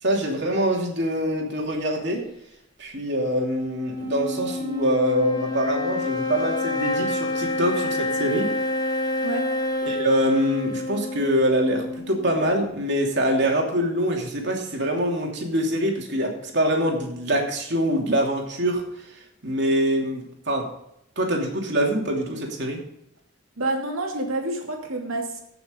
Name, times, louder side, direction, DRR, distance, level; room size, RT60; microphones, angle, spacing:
voice 1, 0.0-2.3 2.8-8.5 9.9-20.7 21.2-22.8, equal, 55° right, 0 dB, 2.9 m, -24 dB
sound 1, 3.2-12.6, left 2 dB, 20° left, 1.8 m, -28 dB
voice 2, 23.6-25.4, right 2 dB, 85° right, 1 dB, 2.8 m, -28 dB
17.0 x 6.9 x 3.9 m, 0.79 s
head